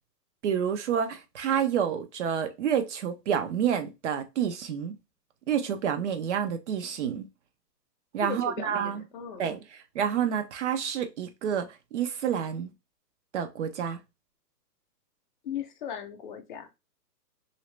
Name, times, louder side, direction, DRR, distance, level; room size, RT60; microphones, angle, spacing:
voice 1, 0.4-4.9 5.5-7.3 8.1-9.0 9.4-12.7 13.3-14.0, right 8 dB, 45° right, 0.7 m, -29 dB
voice 2, 8.2-9.4 15.4-16.7, left 8 dB, 30° left, 0.6 m, -37 dB
3.0 x 2.8 x 3.1 m
hypercardioid pair, 140°, 49 cm